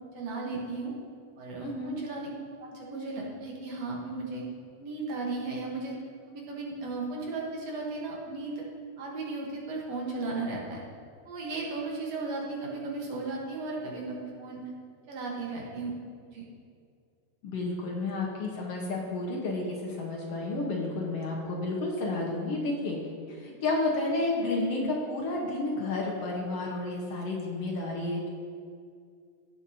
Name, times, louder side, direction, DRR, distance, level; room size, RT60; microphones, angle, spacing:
voice 1, 0.1-0.9 1.4-2.3 2.6-4.5 4.8-6.0 6.3-8.6 9.0-10.8 11.2-14.7 15.1-15.9 16.3-16.5, right 3 dB, 65° right, -2 dB, 2.3 m, -35 dB
voice 2, 1.6-2.0 17.4-23.0 23.3-28.3, left 2 dB, 60° left, -2 dB, 2.0 m, -31 dB
17.0 x 7.1 x 2.8 m, 2.2 s
omnidirectional pair, 3.4 m